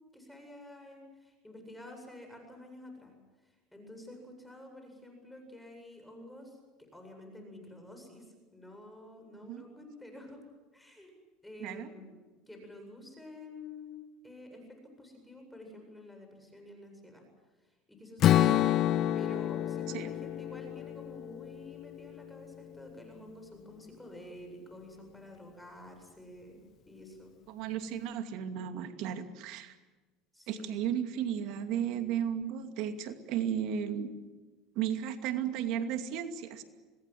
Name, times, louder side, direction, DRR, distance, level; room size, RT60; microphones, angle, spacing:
voice 1, 0.1-3.1 3.4-10.4 10.7-11.1 11.4-12.2 12.5-17.2 17.6-18.8 19.1-27.3 30.3-30.7, left 1 dB, 5° left, 4 dB, 7.9 m, -49 dB
voice 2, 11.6-11.9 18.4-18.6 19.9-20.1 27.5-29.7 30.5-34.1 34.8-36.6, right 9 dB, 65° right, 7 dB, 2.5 m, -34 dB
Strum, 18.2-22.4, left 12 dB, 50° left, 0.8 m, -28 dB
26.0 x 19.5 x 7.8 m, 1.2 s
supercardioid pair, 95°, 0 cm